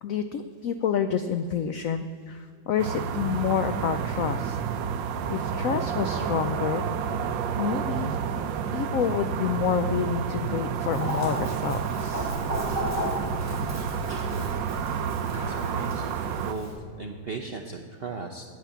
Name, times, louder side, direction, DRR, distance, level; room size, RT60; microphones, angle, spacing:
voice 1, 0.0-4.6 5.3-6.9 7.6-8.2 8.7-12.4, left 7 dB, 80° left, 9 dB, 0.7 m, -28 dB
sound 1, 2.8-16.5, right 7 dB, 85° right, 1.4 m, -30 dB
Chicken rooster, 10.9-16.7, equal, 10° left, 2.3 m, -35 dB
voice 2, 15.5-16.0 16.5-16.7 17.0-18.4, right 4 dB, 65° right, 3 dB, 0.6 m, -36 dB
9.0 x 8.8 x 7.0 m, 2.2 s
omnidirectional pair, 1.9 m